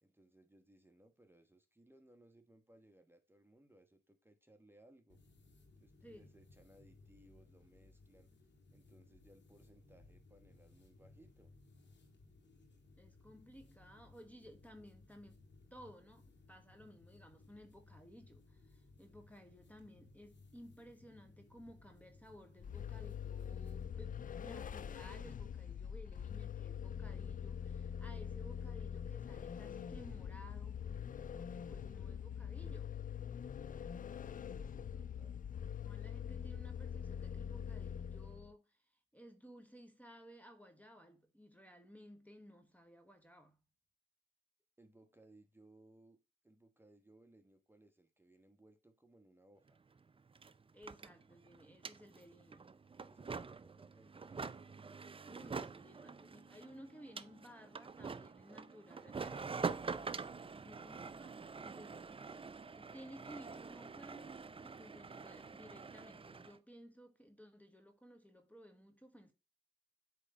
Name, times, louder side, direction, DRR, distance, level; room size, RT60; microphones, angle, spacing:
voice 1, 0.0-5.2 5.8-8.3 8.7-11.5 34.2-35.4 44.8-46.2 46.4-49.8 53.0-54.7, right 1 dB, 10° right, 1.2 m, -65 dB
sound 1, 5.1-23.9, left 3 dB, 65° left, 2.1 m, -63 dB
voice 2, 6.0-6.3 13.0-15.4 15.7-30.8 31.3-33.0 35.8-38.9 39.1-43.6 50.7-52.8 55.2-62.5 62.7-69.3, equal, 10° left, 1.2 m, -57 dB
Vehicle, 22.6-38.5, left 8 dB, 45° left, 0.4 m, -44 dB
sound 2, 49.7-49.8 50.0-66.6, right 5 dB, 30° right, 0.5 m, -46 dB
8.1 x 3.5 x 4.1 m
supercardioid pair, 50°, 20 cm